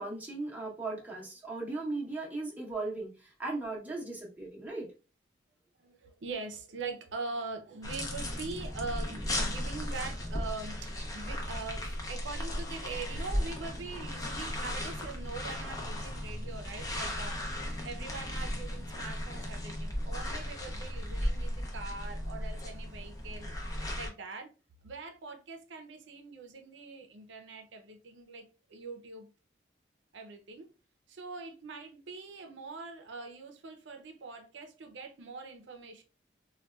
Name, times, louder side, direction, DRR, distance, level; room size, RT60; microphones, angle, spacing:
voice 1, 0.0-4.9, right 2 dB, 10° right, 0.8 m, -37 dB
voice 2, 5.8-17.4 17.7-23.5 24.0-24.5 24.8-29.3 30.1-30.7 31.1-36.0, right 3 dB, 80° right, 0.5 m, -43 dB
sound 1, 7.8-24.1, left 1 dB, 20° left, 0.6 m, -36 dB
3.9 x 2.2 x 2.2 m
head